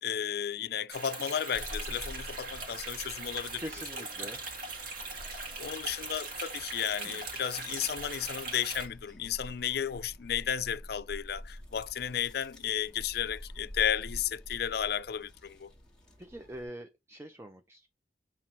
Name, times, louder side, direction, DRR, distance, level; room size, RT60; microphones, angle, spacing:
voice 1, 0.0-3.6 4.2-4.3 5.6-15.7, left 9 dB, 55° left, 0.4 m, -33 dB
sound 1, 0.9-8.9, right 3 dB, 50° right, 1.6 m, -40 dB
sound 2, 1.5-16.7, equal, 5° left, 1.1 m, -48 dB
voice 2, 3.6-4.4 16.2-17.9, equal, 15° right, 0.5 m, -43 dB
7.3 x 3.0 x 4.3 m
head